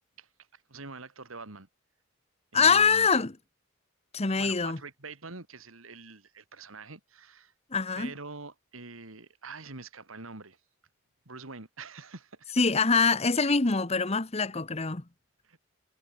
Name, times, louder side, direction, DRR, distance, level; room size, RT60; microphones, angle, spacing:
voice 1, 0.2-1.7 2.5-3.1 4.4-7.5 8.0-10.6 11.2-12.5 15.4-15.6, right 3 dB, 80° right, 2.9 m, -45 dB
voice 2, 2.5-3.3 4.1-4.8 7.7-8.1 12.6-15.0, left 5 dB, 30° left, 1.1 m, -24 dB
head